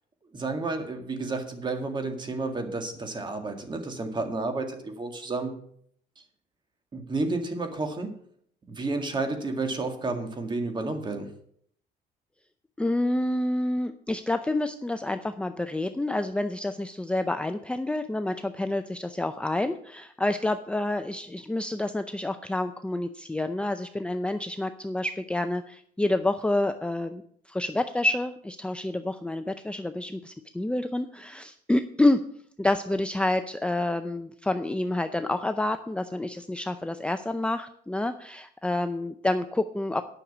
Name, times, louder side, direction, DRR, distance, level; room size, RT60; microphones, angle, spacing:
voice 1, 0.3-5.5 6.2-6.3 6.9-8.1 8.7-11.3, right 3 dB, 25° right, 5 dB, 2.0 m, -31 dB
voice 2, 12.8-32.2 32.6-40.0, left 2 dB, 5° left, 8 dB, 0.5 m, -28 dB
10.0 x 6.4 x 7.3 m, 0.65 s
cardioid pair, 110°, 17 cm